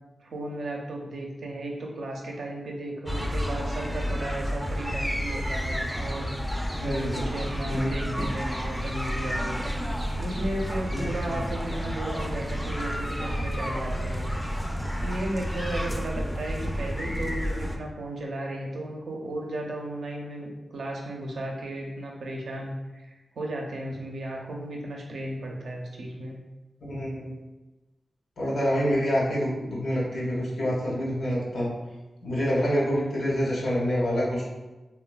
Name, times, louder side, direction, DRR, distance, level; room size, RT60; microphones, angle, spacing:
voice 1, 0.2-9.6 10.1-14.3 15.0-26.4, right 1 dB, 85° right, -1 dB, 0.5 m, -35 dB
sound 1, 3.1-17.8, equal, 5° left, 0.4 m, -30 dB
voice 2, 6.8-7.3 7.7-8.1 10.9-11.0 26.9-27.3 28.4-31.7 32.2-34.5, equal, 85° left, -6 dB, 1.0 m, -27 dB
3.3 x 2.2 x 2.2 m, 1.1 s
cardioid pair, 55°, 0 cm